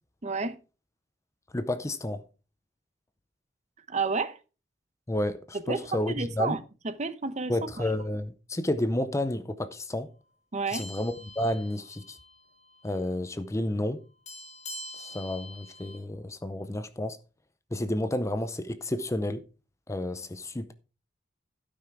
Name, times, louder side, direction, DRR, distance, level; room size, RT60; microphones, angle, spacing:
voice 1, 0.2-0.6 3.9-4.4 5.7-7.9 10.5-10.9, right 4 dB, 40° right, 0.9 m, -31 dB
voice 2, 1.5-2.2 5.1-6.6 7.5-10.1 10.7-12.2 12.8-14.0 15.0-17.2 17.7-19.4 19.9-20.7, left 1 dB, 15° left, 0.6 m, -31 dB
sound 1, 10.7-12.4 12.7-12.9 14.3-16.0, left 1 dB, 40° left, 4.9 m, -44 dB
12.5 x 5.9 x 4.7 m
head